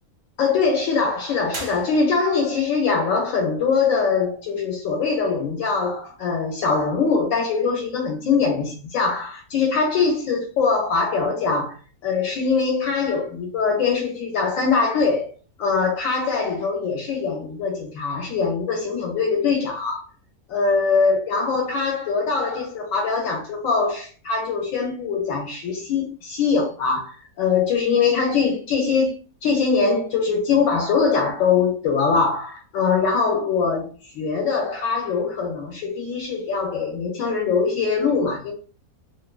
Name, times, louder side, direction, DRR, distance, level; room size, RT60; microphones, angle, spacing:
voice 1, 0.4-11.8 12.0-15.3 15.6-20.0 20.5-38.5, left 5 dB, 70° left, 0.9 m, -22 dB
sound 1, 1.5-2.5, right 2 dB, 55° right, 0.6 m, -37 dB
2.5 x 2.1 x 2.3 m
omnidirectional pair, 1.5 m